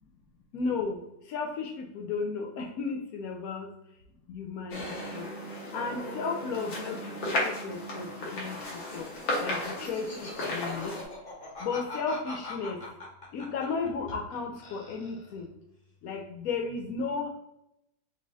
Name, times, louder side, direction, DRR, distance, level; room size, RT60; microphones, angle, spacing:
voice 1, 0.5-1.0 1.3-3.7 4.3-5.3 5.7-7.2 7.4-8.1 8.3-8.6 8.9-9.1 9.4-11.0 11.6-12.8 13.3-15.5 16.0-17.3, left 4 dB, 85° left, 1 dB, 0.7 m, -34 dB
sound 1, 4.7-11.0, left 1 dB, 65° left, 1.9 m, -35 dB
Laughter, 8.6-14.4 14.6-15.4, left 2 dB, 30° left, 1.1 m, -43 dB
5.1 x 2.7 x 3.4 m, 0.84 s
omnidirectional pair, 2.2 m